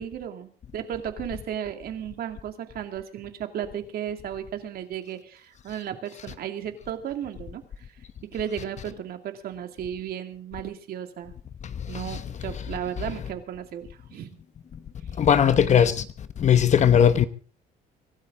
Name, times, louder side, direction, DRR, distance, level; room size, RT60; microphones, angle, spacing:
voice 1, 0.0-7.6 8.3-11.3 11.9-14.3, right 9 dB, 65° right, 2.4 m, -34 dB
voice 2, 15.2-16.0 16.4-17.3, left 8 dB, 45° left, 1.0 m, -18 dB
24.5 x 13.0 x 3.8 m
cardioid pair, 110°, 17 cm